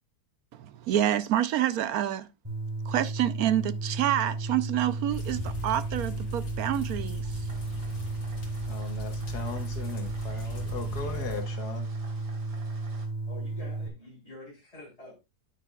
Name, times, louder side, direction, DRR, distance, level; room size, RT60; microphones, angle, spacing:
voice 1, 0.5-2.3 2.9-7.4, right 11 dB, 70° right, 1.1 m, -28 dB
sound 1, 2.4-13.9, right 3 dB, 15° right, 2.5 m, -34 dB
sound 2, 5.1-11.4, left 3 dB, 45° left, 2.4 m, -41 dB
sound 3, 7.5-13.1, right 3 dB, 85° right, 2.4 m, -52 dB
voice 2, 8.7-11.9, left 4 dB, 75° left, 1.8 m, -38 dB
voice 3, 13.3-15.2, left 2 dB, 20° left, 3.5 m, -47 dB
9.4 x 9.2 x 2.3 m
omnidirectional pair, 1.7 m